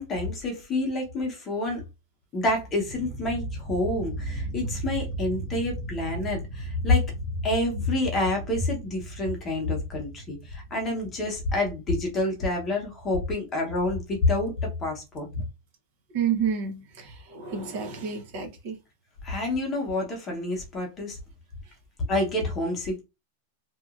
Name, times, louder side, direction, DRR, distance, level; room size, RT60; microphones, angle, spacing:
voice 1, 0.0-1.8 2.3-7.0 7.4-15.4 19.2-21.2 22.1-23.0, left 2 dB, 20° left, 0.9 m, -28 dB
sound 1, 2.4-14.0, right 2 dB, 10° right, 0.7 m, -37 dB
voice 2, 16.1-18.8, right 7 dB, 50° right, 0.8 m, -30 dB
2.9 x 2.5 x 2.4 m
supercardioid pair, 165°, 0 cm